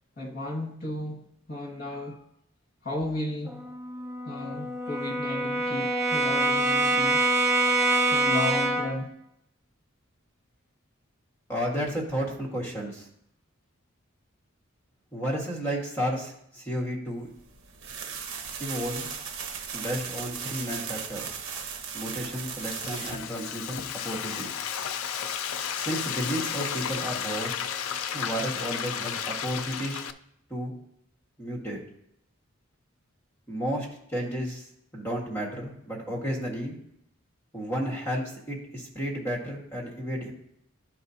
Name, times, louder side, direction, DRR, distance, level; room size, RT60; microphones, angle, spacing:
voice 1, 0.2-1.2 1.5-2.2 2.8-3.6 4.2-7.2 8.1-9.1, left 1 dB, 45° left, 1.7 m, -34 dB
Brass instrument, 3.5-9.0, right 2 dB, 15° right, 0.6 m, -25 dB
voice 2, 11.5-13.1 15.1-17.3 18.6-19.1 19.7-21.3 21.9-24.5 25.8-27.6 28.1-30.0 30.5-30.7 31.4-31.8 33.5-34.6 34.9-36.8 37.5-40.3, equal, 10° left, 1.6 m, -32 dB
sound 1, 17.4-23.2, right 6 dB, 70° right, 1.1 m, -37 dB
Frying (food), 22.2-30.1, left 8 dB, 80° left, 0.4 m, -33 dB
11.5 x 4.6 x 2.8 m
head